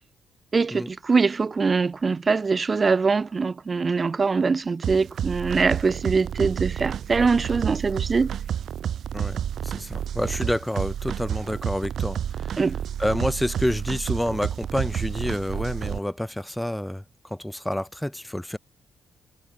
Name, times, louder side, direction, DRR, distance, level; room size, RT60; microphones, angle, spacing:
voice 1, 0.5-8.4 12.6-12.8, right 4 dB, 30° right, 0.5 m, -23 dB
sound 1, 4.8-16.0, right 9 dB, 65° right, 1.9 m, -30 dB
voice 2, 9.1-12.6 13.0-18.6, left 1 dB, 5° left, 1.1 m, -28 dB
cardioid pair, 90°, 0 cm